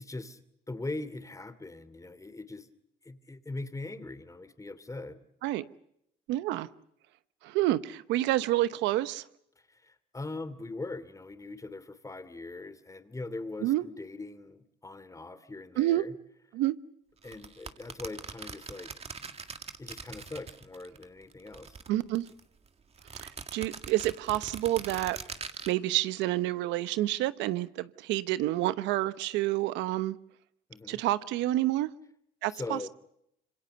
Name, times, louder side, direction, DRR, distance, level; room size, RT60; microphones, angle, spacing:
voice 1, 0.0-2.7 3.0-5.2 9.7-16.1 17.2-18.9 19.8-21.8 30.7-31.0 32.5-32.9, left 2 dB, 20° left, 2.8 m, -41 dB
voice 2, 6.3-6.7 7.4-9.2 13.6-13.8 15.8-16.0 16.5-16.8 21.9-22.2 23.2-25.2 25.7-30.2 30.9-31.9 32.4-32.9, right 15 dB, 90° right, 1.0 m, -28 dB
sound 1, 17.2-21.0 21.3-22.4 23.0-25.7, right 5 dB, 35° right, 2.0 m, -42 dB
27.0 x 25.0 x 6.8 m
cardioid pair, 85°, 18 cm